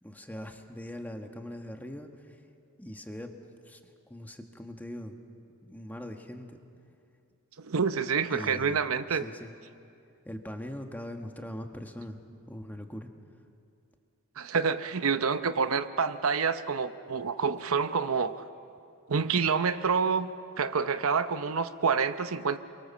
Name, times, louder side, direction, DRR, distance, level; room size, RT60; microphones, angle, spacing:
voice 1, 0.0-2.4 2.8-3.4 3.6-5.2 5.6-6.6 8.3-8.8 9.1-9.5 10.2-12.2 12.5-13.1, left 1 dB, 10° left, 4 dB, 1.5 m, -41 dB
voice 2, 7.6-9.2 14.4-18.4 19.1-20.3 20.6-22.6, right 5 dB, 70° right, 11 dB, 0.8 m, -27 dB
28.5 x 23.5 x 7.3 m, 2.5 s
head